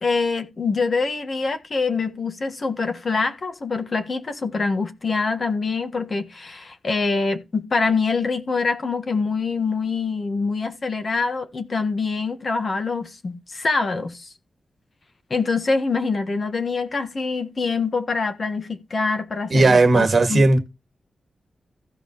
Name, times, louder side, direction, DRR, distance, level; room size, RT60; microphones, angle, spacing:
voice 1, 0.0-14.3 15.3-20.4, left 4 dB, 40° left, 1.6 m, -25 dB
voice 2, 19.5-20.6, right 2 dB, 40° right, 2.1 m, -16 dB
15.5 x 5.4 x 3.1 m
wide cardioid pair, 130°, 0 cm